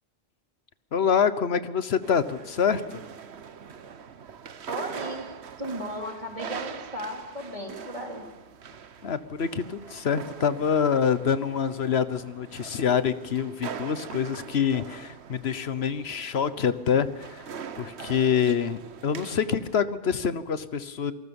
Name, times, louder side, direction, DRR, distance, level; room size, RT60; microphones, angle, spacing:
voice 1, 0.9-2.8 9.0-17.5 17.8-21.1, left 7 dB, 75° left, 13 dB, 1.3 m, -26 dB
sound 1, 2.0-19.8, right 7 dB, 90° right, 1.2 m, -42 dB
voice 2, 4.7-5.3 5.6-8.2, equal, 35° right, 1 dB, 3.3 m, -35 dB
27.5 x 19.0 x 7.1 m, 1.1 s
omnidirectional pair, 1.1 m